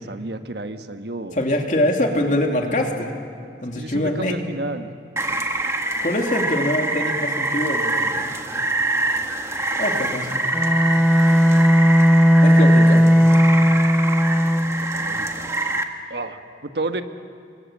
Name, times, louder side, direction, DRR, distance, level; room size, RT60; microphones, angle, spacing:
voice 1, 0.0-1.4 3.7-4.9 14.6-15.5 16.1-17.0, right 2 dB, 70° right, 7 dB, 1.3 m, -31 dB
voice 2, 1.3-3.1 3.6-4.4 6.0-8.3 9.8-10.4 12.4-13.1, left 1 dB, 45° left, 2 dB, 2.7 m, -23 dB
Rain, 5.2-15.8, right 2 dB, 15° right, 1.4 m, -25 dB
Bowed string instrument, 10.5-14.8, equal, ahead, 1.1 m, -15 dB
29.0 x 23.5 x 7.4 m, 2.3 s
head